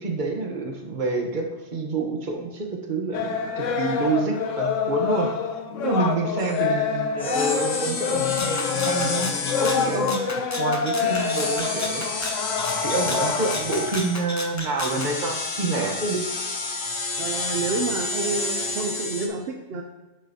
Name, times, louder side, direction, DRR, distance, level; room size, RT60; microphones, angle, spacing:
voice 1, 0.0-5.3 5.8-9.3 9.6-10.3 10.6-12.0 12.8-16.2, right 3 dB, 40° right, 1 dB, 1.2 m, -27 dB
sound 1, 3.1-13.6, left 6 dB, 80° left, 1.0 m, -27 dB
sound 2, 6.4-6.6 7.2-10.4 11.0-14.3 14.8-19.3, left 3 dB, 60° left, 1.2 m, -30 dB
Rattle (instrument), 8.4-15.1, left 2 dB, 20° left, 0.5 m, -34 dB
voice 2, 17.2-19.8, right 3 dB, 60° right, 3 dB, 0.8 m, -29 dB
9.1 x 6.9 x 2.8 m, 1.1 s
omnidirectional pair, 1.3 m